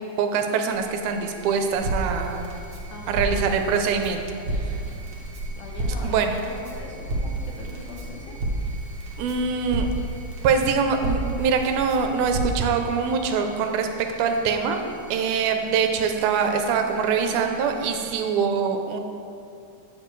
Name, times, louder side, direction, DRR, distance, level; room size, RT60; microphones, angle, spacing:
voice 1, 0.2-2.5 3.1-4.6 6.0-6.4 9.2-9.9 10.4-19.0, right 6 dB, 90° right, 5 dB, 2.1 m, -24 dB
sound 1, 0.7-18.1, right 1 dB, 50° left, 2.0 m, -46 dB
Crackle, 1.7-12.6, right 1 dB, 60° right, 1.8 m, -31 dB
voice 2, 2.9-3.4 4.5-5.2 5.6-8.3, left 3 dB, 75° left, -1 dB, 2.3 m, -42 dB
8.9 x 7.1 x 3.1 m, 2.6 s
omnidirectional pair, 3.5 m